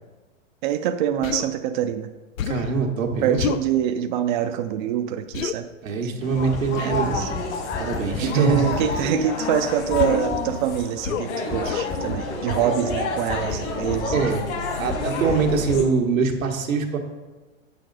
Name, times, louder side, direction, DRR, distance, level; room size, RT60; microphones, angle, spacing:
voice 1, 0.6-2.1 3.2-5.7 6.8-7.3 8.2-14.2, right 10 dB, 40° right, 7 dB, 0.4 m, -25 dB
Human voice, 1.2-1.5 2.4-2.8 3.4-3.7 5.3-5.6 6.8-7.1 8.3-8.6 9.9-10.3 11.0-11.3 11.6-11.9, left 8 dB, 85° left, 0.6 m, -28 dB
voice 2, 2.4-3.4 5.8-7.3 7.8-8.6 12.6-12.7 14.1-14.4 14.8-17.0, right 5 dB, 85° right, 2 dB, 1.4 m, -23 dB
sound 1, 6.2-15.8, left 3 dB, 60° left, 1.7 m, -29 dB
sound 2, 6.4-9.2 9.5-9.6 9.9-10.8 11.1-11.2 11.5-14.4 14.7-15.8, left 3 dB, 10° left, 0.7 m, -34 dB
8.1 x 6.7 x 3.9 m, 1.2 s
hypercardioid pair, 125°, 39 cm